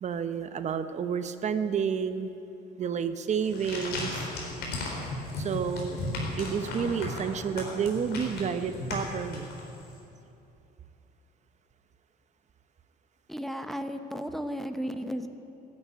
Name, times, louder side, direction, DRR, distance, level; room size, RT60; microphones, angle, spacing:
voice 1, 0.0-2.3 2.8-4.3 5.3-9.5, right 7 dB, 45° right, 10 dB, 0.8 m, -30 dB
sound 1, 3.4-9.9, left 2 dB, 70° left, 4.0 m, -35 dB
voice 2, 13.3-15.3, equal, ahead, 7 dB, 0.8 m, -34 dB
15.0 x 9.7 x 9.6 m, 2.8 s
cardioid pair, 110°, 17 cm